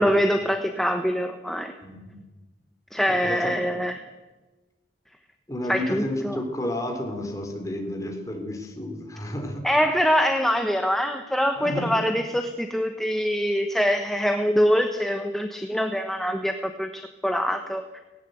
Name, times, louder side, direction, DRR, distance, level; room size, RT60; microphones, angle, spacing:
voice 1, 0.0-1.7 2.9-4.0 5.7-6.4 9.6-18.0, equal, ahead, 5 dB, 1.1 m, -24 dB
voice 2, 1.8-2.2 3.1-3.5 5.5-9.7 11.6-11.9, left 1 dB, 20° left, 3 dB, 3.7 m, -31 dB
18.5 x 17.5 x 8.2 m, 1.2 s
head